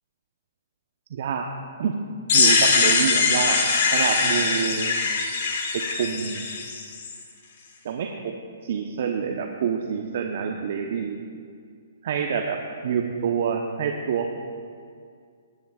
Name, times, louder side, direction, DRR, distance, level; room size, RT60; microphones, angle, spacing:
voice 1, 1.1-1.5 1.8-1.9 2.3-3.6 3.9-5.0 5.7-6.5 7.8-8.3 8.6-11.2 12.0-14.4, right 7 dB, 55° right, 3 dB, 0.9 m, -27 dB
sound 1, 2.3-7.1, left 4 dB, 55° left, 1.8 m, -22 dB
20.0 x 10.5 x 2.4 m, 2.2 s
figure-of-eight pair, 125°, 0 cm